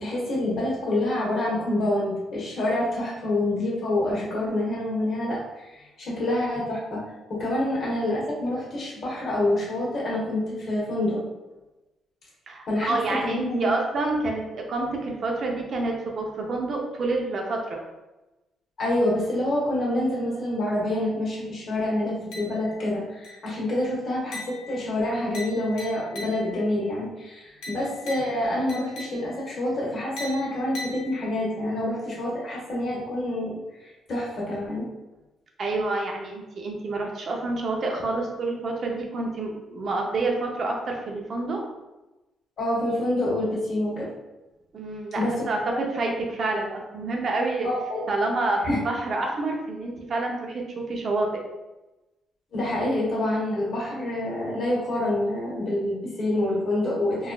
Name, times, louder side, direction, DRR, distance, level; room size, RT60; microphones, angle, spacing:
voice 1, 0.0-7.0 7.3-11.2 12.7-13.7 18.8-34.8 42.6-44.1 45.1-45.3 47.6-48.1 48.6-48.8 52.5-57.3, left 1 dB, 55° left, -5 dB, 1.5 m, -27 dB
voice 2, 12.5-17.8 35.6-41.6 44.7-47.7 48.1-50.6 50.9-51.4, right 2 dB, 50° right, 1 dB, 0.7 m, -28 dB
sound 1, 22.3-22.9 23.2-23.7 24.3-26.7 27.6-29.5 30.2-31.6, left 2 dB, 80° left, 0.9 m, -41 dB
3.9 x 2.6 x 2.4 m, 1.0 s
cardioid pair, 90°, 0 cm